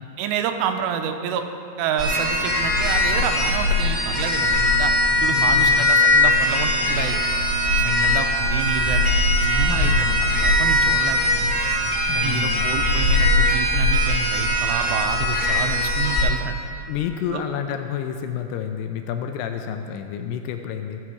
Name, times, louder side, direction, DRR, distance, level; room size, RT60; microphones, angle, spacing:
voice 1, 0.2-1.4 1.8-4.9 5.2-7.2 7.8-9.1 9.4-11.5 12.2-16.6 17.3-17.4, right 7 dB, 85° right, 6 dB, 2.8 m, -29 dB
sound 1, 2.0-16.2, left 1 dB, 20° left, 2.3 m, -20 dB
voice 2, 5.3-5.8 7.8-8.3 9.7-10.3 12.1-12.7 16.9-21.0, left 8 dB, 80° left, 6 dB, 2.5 m, -29 dB
15.5 x 6.0 x 4.8 m, 2.8 s
omnidirectional pair, 4.9 m